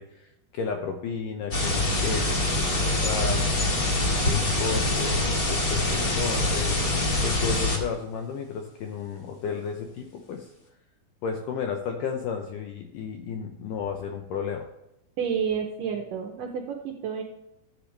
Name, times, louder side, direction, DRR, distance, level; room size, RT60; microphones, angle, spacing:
voice 1, 0.0-3.7 4.3-5.2 5.5-6.8 7.2-10.5 11.2-14.7, left 6 dB, 80° left, 4 dB, 1.9 m, -33 dB
sound 1, 1.5-7.8, left 2 dB, 40° left, 1.2 m, -25 dB
voice 2, 15.2-17.2, right 7 dB, 80° right, 3 dB, 2.0 m, -30 dB
13.0 x 8.0 x 3.3 m, 0.91 s
omnidirectional pair, 4.8 m